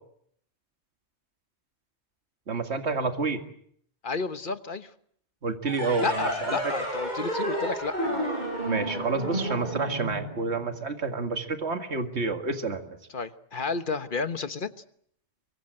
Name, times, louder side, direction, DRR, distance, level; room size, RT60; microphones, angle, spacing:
voice 1, 2.5-3.4 5.4-6.6 8.6-13.0, right 4 dB, 70° right, 6 dB, 2.3 m, -29 dB
voice 2, 4.0-4.9 6.0-8.3 13.1-14.7, left 4 dB, 50° left, 11 dB, 1.3 m, -31 dB
sound 1, 5.6-10.9, right 1 dB, 40° right, 7.2 m, -31 dB
24.5 x 24.0 x 7.8 m, 0.66 s
omnidirectional pair, 1.2 m